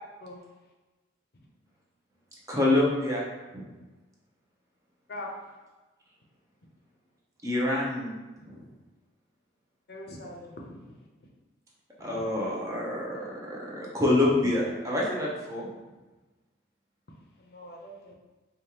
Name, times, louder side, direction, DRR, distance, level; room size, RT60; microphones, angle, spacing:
voice 1, 2.5-3.2 3.5-3.7 7.4-8.1 8.4-8.7 12.0-15.7, left 2 dB, 15° right, -4 dB, 0.6 m, -27 dB
voice 2, 9.9-11.3 12.1-12.3 17.1-18.1, left 1 dB, 55° left, 0 dB, 0.6 m, -43 dB
5.0 x 2.4 x 2.8 m, 1.2 s
head